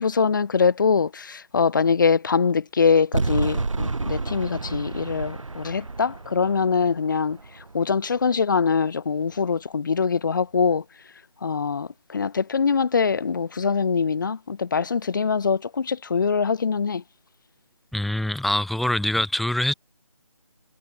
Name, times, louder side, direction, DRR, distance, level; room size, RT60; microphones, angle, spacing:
voice 1, 0.0-7.4 7.7-10.8 11.4-17.0, left 5 dB, 35° left, 2.3 m, -23 dB
sound 1, 3.1-8.3, right 3 dB, 60° right, 4.7 m, -30 dB
voice 2, 17.9-19.7, left 1 dB, ahead, 3.3 m, -24 dB
figure-of-eight pair, 165°, 18 cm